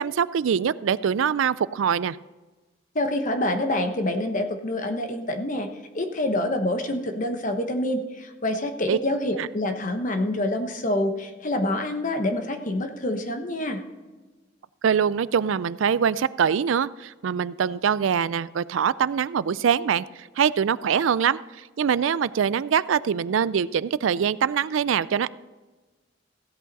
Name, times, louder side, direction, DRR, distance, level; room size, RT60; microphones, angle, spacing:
voice 1, 0.0-2.2 8.9-9.0 9.4-9.5 14.8-21.4 21.8-25.3, right 7 dB, 85° right, 18 dB, 0.4 m, -23 dB
voice 2, 2.9-5.7 5.9-13.8, left 1 dB, 40° left, 6 dB, 1.1 m, -26 dB
15.5 x 8.3 x 4.1 m, 1.3 s
head